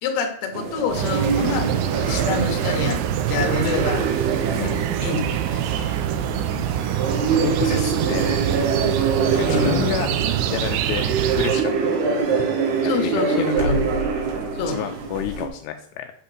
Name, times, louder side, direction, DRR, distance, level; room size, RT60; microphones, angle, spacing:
voice 1, 0.0-1.7 2.0-3.0 3.3-4.0 5.0-5.2 9.4-9.9 12.8-13.8 14.5-14.8, left 4 dB, 65° left, 4 dB, 3.3 m, -26 dB
sound 1, 0.5-15.5, right 5 dB, 65° right, 3.2 m, -25 dB
sound 2, 0.9-11.7, right 10 dB, 85° right, 3.3 m, -25 dB
voice 2, 7.3-8.5 9.3-10.1 10.5-11.1 11.4-11.9 13.4-13.7 14.7-16.1, left 11 dB, 85° left, 6 dB, 3.1 m, -30 dB
8.7 x 5.6 x 6.6 m, 0.64 s
omnidirectional pair, 5.5 m